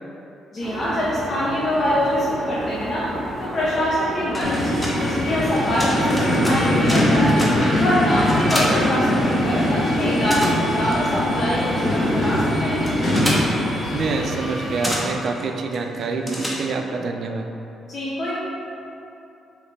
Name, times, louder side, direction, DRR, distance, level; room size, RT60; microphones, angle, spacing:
voice 1, 0.5-3.1 3.4-4.7 4.9-7.4 7.8-12.9 17.9-18.4, left 1 dB, 45° left, -8 dB, 0.7 m, -24 dB
sound 1, 0.6-14.2, right 1 dB, 40° right, 0.8 m, -32 dB
sound 2, 4.1-9.7 10.0-17.0, equal, 10° left, 0.8 m, -30 dB
sound 3, 4.4-15.0, left 1 dB, 65° left, 1.2 m, -22 dB
voice 2, 8.4-8.8 13.9-17.5, right 4 dB, 60° right, 4 dB, 0.4 m, -27 dB
4.9 x 3.1 x 3.3 m, 2.8 s
cardioid pair, 90°, 0 cm